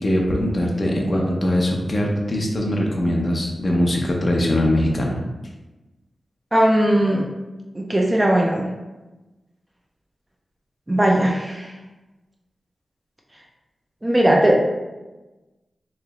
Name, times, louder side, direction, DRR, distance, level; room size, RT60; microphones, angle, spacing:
voice 1, 0.0-5.2, left 1 dB, 30° left, -1 dB, 0.6 m, -21 dB
voice 2, 6.5-7.3 7.7-8.7 10.9-11.8 14.0-14.6, right 1 dB, 15° right, 0 dB, 0.3 m, -18 dB
3.1 x 2.9 x 3.6 m, 1.1 s
wide cardioid pair, 175°, 0 cm